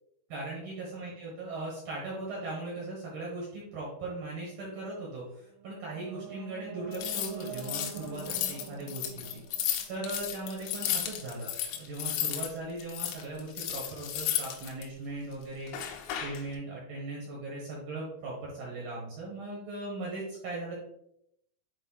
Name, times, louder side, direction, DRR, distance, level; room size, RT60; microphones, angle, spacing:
voice 1, 0.3-15.7 16.2-20.8, right 2 dB, 70° right, -4 dB, 2.3 m, -39 dB
sound 1, 5.5-10.6, right 6 dB, 90° right, 3.3 m, -45 dB
sound 2, 6.9-12.5 12.8-14.8 15.7-16.4, left 10 dB, 85° left, 3.2 m, -33 dB
10.0 x 4.2 x 2.3 m, 0.76 s
omnidirectional pair, 5.8 m